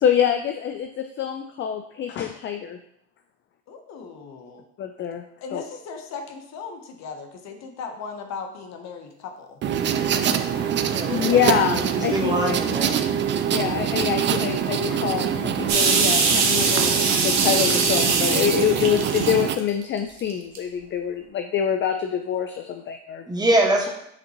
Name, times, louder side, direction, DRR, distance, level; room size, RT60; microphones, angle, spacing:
voice 1, 0.0-2.8 4.8-5.2 5.5-5.6 11.1-12.5 13.5-16.9 17.2-23.2, left 9 dB, 35° left, 7 dB, 0.5 m, -25 dB
voice 2, 3.7-4.6 5.4-9.6 10.1-10.8, left 5 dB, 55° left, 5 dB, 1.0 m, -38 dB
sound 1, 9.6-19.6, right 8 dB, 35° right, 0.5 m, -24 dB
voice 3, 10.8-11.4 11.8-12.9 23.3-23.9, right 1 dB, 10° right, 0 dB, 1.5 m, -23 dB
sound 2, 15.7-19.8 20.3-20.6, right 4 dB, 55° right, 1.4 m, -22 dB
6.0 x 5.1 x 3.0 m, 0.74 s
hypercardioid pair, 80°, 33 cm